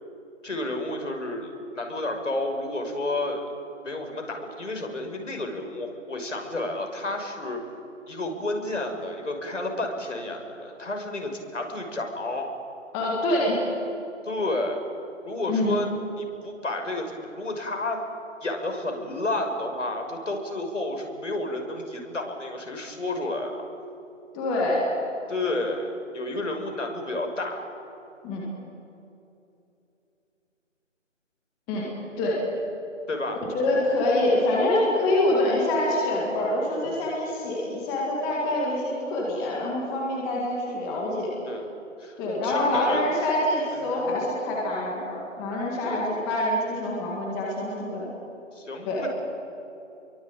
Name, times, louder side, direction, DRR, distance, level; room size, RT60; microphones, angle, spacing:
voice 1, 0.4-3.4 3.8-7.6 8.1-12.5 14.2-14.8 15.2-18.0 18.4-23.6 25.3-27.7 33.1-33.4 41.4-41.7 42.0-43.0 43.9-44.1 45.8-46.1 48.5-49.1, left 2 dB, 70° left, 3 dB, 6.3 m, -31 dB
voice 2, 12.9-13.6 15.5-15.8 24.3-24.9 28.2-28.5 31.7-32.4 33.5-41.3 42.2-48.1 48.9-49.1, left 1 dB, 10° left, -3 dB, 1.9 m, -25 dB
28.5 x 23.0 x 9.0 m, 2.8 s
figure-of-eight pair, 160°, 38 cm